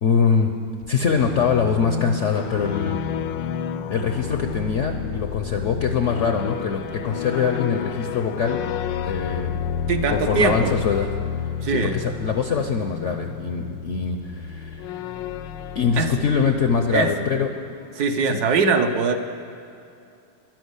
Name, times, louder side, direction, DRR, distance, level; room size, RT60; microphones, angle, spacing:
voice 1, 0.0-0.5 0.9-3.0 3.9-8.6 9.0-9.5 10.1-11.1 11.7-15.0 15.7-17.5 18.3-18.4, left 6 dB, 65° left, 5 dB, 0.7 m, -23 dB
sound 1, 0.8-17.4, left 8 dB, 85° left, 1.3 m, -31 dB
voice 2, 9.9-10.8 11.6-12.0 16.0-16.1 16.9-17.1 18.0-19.2, right 4 dB, 65° right, 6 dB, 1.2 m, -21 dB
12.0 x 11.0 x 8.1 m, 2.6 s
omnidirectional pair, 2.0 m